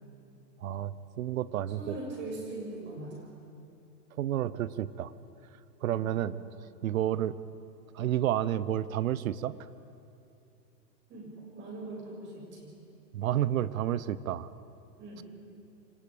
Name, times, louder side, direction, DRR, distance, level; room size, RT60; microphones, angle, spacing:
voice 1, 0.6-2.0 4.2-5.1 5.8-6.3 6.8-7.4 7.9-9.6 13.1-14.5, right 12 dB, 55° right, 17 dB, 0.9 m, -30 dB
voice 2, 1.7-3.2 5.9-6.1 11.1-12.8 15.0-15.2, right 2 dB, 20° right, -2 dB, 7.2 m, -41 dB
29.0 x 25.5 x 5.2 m, 2.6 s
hypercardioid pair, 145°, 48 cm